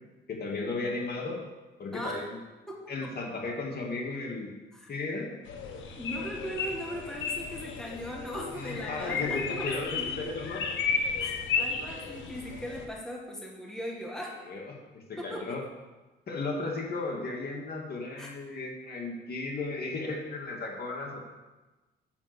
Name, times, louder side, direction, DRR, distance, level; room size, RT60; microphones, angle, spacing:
voice 1, 0.3-1.4 1.8-2.4 2.9-4.5 4.9-5.4 8.5-10.6 14.5-15.6 16.3-21.2, left 3 dB, 50° left, 0 dB, 2.1 m, -35 dB
voice 2, 2.7-3.1 4.8-4.9 6.0-10.3 11.2-14.3 15.2-15.6 18.2-18.3, equal, 5° left, -1 dB, 1.8 m, -39 dB
sound 1, 5.4-12.9, left 5 dB, 75° left, 1.4 m, -33 dB
7.2 x 6.6 x 6.7 m, 1.1 s
cardioid pair, 90°, 20 cm